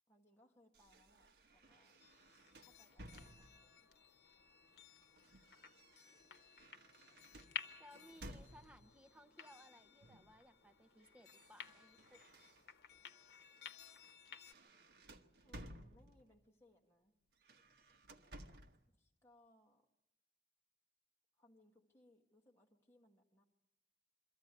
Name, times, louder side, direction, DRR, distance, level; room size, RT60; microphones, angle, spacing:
voice 1, 0.1-2.0 2.6-3.9 15.4-17.2 18.9-19.9 21.3-23.4, left 1 dB, 15° left, -1 dB, 1.5 m, -70 dB
sound 1, 0.7-3.8 4.8-9.0 10.0-10.4 10.7-13.0 13.4-13.7 14.0-16.4 17.3-18.8, right 1 dB, 65° right, 1.1 m, -58 dB
sound 2, 2.0-14.5, left 7 dB, 65° left, 1.1 m, -55 dB
voice 2, 7.4-12.4, equal, 5° right, 7 dB, 0.7 m, -63 dB
23.0 x 14.5 x 9.6 m, 0.90 s
head